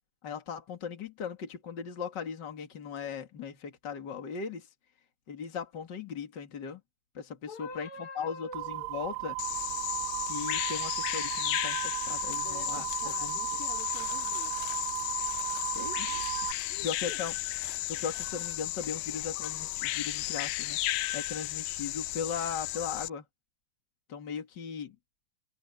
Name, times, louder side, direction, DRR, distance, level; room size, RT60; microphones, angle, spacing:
voice 1, 0.2-4.7 5.3-6.8 7.1-9.4 10.2-13.4 15.7-16.4 16.8-17.3 17.9-23.2 24.1-24.9, left 6 dB, 60° left, 1.1 m, -38 dB
voice 2, 7.5-8.9 12.4-14.6 16.7-17.2, left 3 dB, 35° left, 3.6 m, -46 dB
sound 1, 8.5-16.5, right 28 dB, 85° right, 2.3 m, -36 dB
Bird vocalization bird call bird song, 9.4-23.1, left 18 dB, 85° left, 2.3 m, -34 dB
open air
omnidirectional pair, 5.4 m